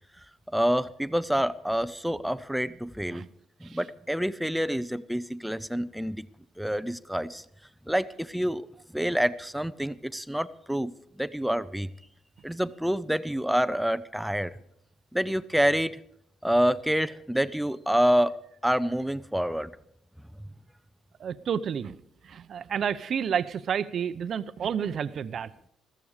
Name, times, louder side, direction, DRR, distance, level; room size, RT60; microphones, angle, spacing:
voice 1, 0.5-3.2 3.6-6.2 6.6-7.4 7.9-8.7 8.9-10.9 11.2-11.9 12.4-14.5 15.1-15.9 16.4-18.4 18.6-19.7, equal, ahead, 14 dB, 0.5 m, -27 dB
voice 2, 21.2-21.9 22.3-25.5, right 8 dB, 50° right, 14 dB, 0.7 m, -30 dB
14.5 x 14.0 x 5.0 m, 0.73 s
cardioid pair, 115°, 0 cm